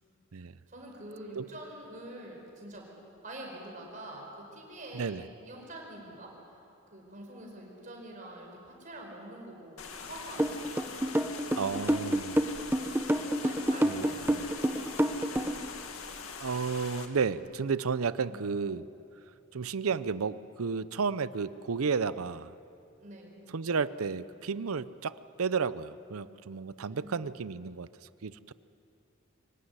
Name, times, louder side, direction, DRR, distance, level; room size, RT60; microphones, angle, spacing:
voice 1, 0.7-2.9 3.2-6.6 6.9-10.8 13.2-14.9 18.3-18.7 23.0-23.5 26.8-27.2, right 1 dB, 35° right, 0 dB, 5.0 m, -46 dB
voice 2, 4.9-5.2 11.5-12.4 12.8-13.0 13.8-14.5 16.4-18.9 19.5-22.5 23.5-27.9 28.2-28.5, right 5 dB, 85° right, 16 dB, 0.6 m, -32 dB
sound 1, 9.8-17.1, left 5 dB, 85° left, 2.0 m, -43 dB
sound 2, 10.4-15.7, right 1 dB, 10° right, 0.8 m, -27 dB
25.0 x 16.5 x 9.7 m, 2.6 s
head